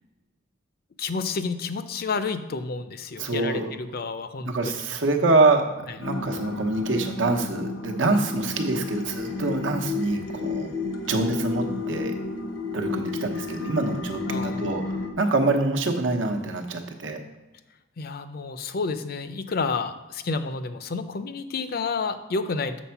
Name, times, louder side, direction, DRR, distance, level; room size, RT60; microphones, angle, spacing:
voice 1, 1.0-4.5 5.9-6.0 14.3-14.8 18.0-22.8, left 4 dB, 55° left, 11 dB, 0.5 m, -30 dB
voice 2, 3.2-3.7 4.4-10.7 11.0-12.2 12.7-17.2, right 2 dB, 85° right, 3 dB, 1.0 m, -25 dB
sound 1, 6.0-15.1, left 3 dB, 85° left, 1.0 m, -32 dB
7.2 x 4.3 x 5.8 m, 1.1 s
head